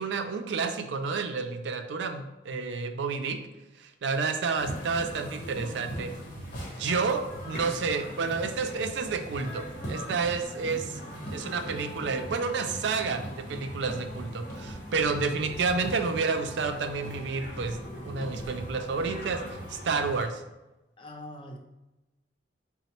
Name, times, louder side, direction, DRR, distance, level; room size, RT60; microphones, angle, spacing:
voice 1, 0.0-3.4 3.8-6.1 6.8-11.0 11.3-20.4, right 4 dB, 70° right, 7 dB, 0.4 m, -30 dB
sound 1, 4.6-20.2, equal, 45° left, 1.1 m, -39 dB
voice 2, 21.0-21.6, left 1 dB, 25° left, 3 dB, 0.4 m, -43 dB
4.1 x 2.0 x 4.1 m, 1.0 s
head